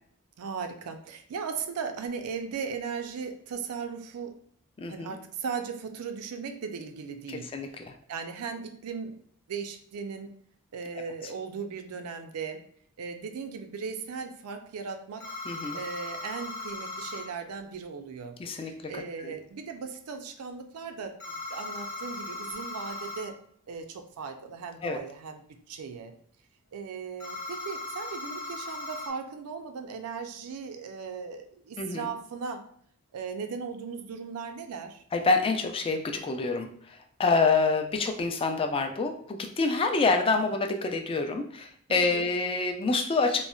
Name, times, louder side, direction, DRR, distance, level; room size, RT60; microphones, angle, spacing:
voice 1, 0.4-4.3 4.9-9.2 9.5-10.3 10.7-12.6 13.0-15.2 15.7-23.4 23.7-26.2 26.7-32.6 33.1-35.0 41.9-42.3, right 5 dB, 75° right, 7 dB, 0.4 m, -37 dB
voice 2, 4.8-5.2 7.3-7.9 15.5-15.8 18.4-19.3 24.8-25.0 31.8-32.1 35.1-43.5, left 3 dB, 25° left, 5 dB, 0.3 m, -27 dB
sound 1, 15.2-17.3 21.2-23.3 27.2-29.1, left 2 dB, 50° left, 0.8 m, -38 dB
3.9 x 2.1 x 2.3 m, 0.64 s
head